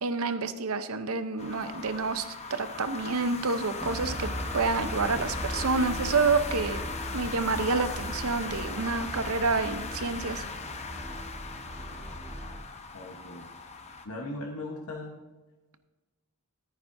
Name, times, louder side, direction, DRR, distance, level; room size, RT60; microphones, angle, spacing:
voice 1, 0.0-6.8 7.1-10.4, right 4 dB, 70° right, 11 dB, 0.7 m, -28 dB
sound 1, 1.4-14.1, left 4 dB, 30° left, 0.8 m, -39 dB
sound 2, 3.8-12.6, equal, 5° right, 1.4 m, -38 dB
voice 2, 12.9-13.5 14.0-15.2, left 2 dB, 75° left, 1 dB, 1.1 m, -38 dB
14.0 x 9.2 x 2.6 m, 1.2 s
head